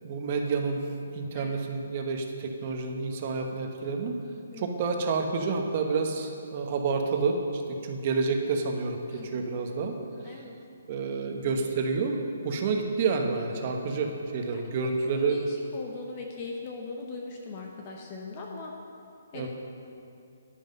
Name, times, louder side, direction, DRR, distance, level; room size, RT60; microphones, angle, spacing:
voice 1, 0.0-0.8 1.1-4.1 4.6-10.0 10.3-10.4 10.9-12.2 12.4-15.6 19.3-19.5, right 4 dB, 35° right, 3 dB, 1.1 m, -29 dB
voice 2, 9.1-9.5 10.2-10.6 14.5-14.7 15.1-18.7 19.3-19.5, left 3 dB, 30° left, 0 dB, 0.9 m, -40 dB
10.5 x 9.3 x 5.4 m, 2.6 s
hypercardioid pair, 165°, 0 cm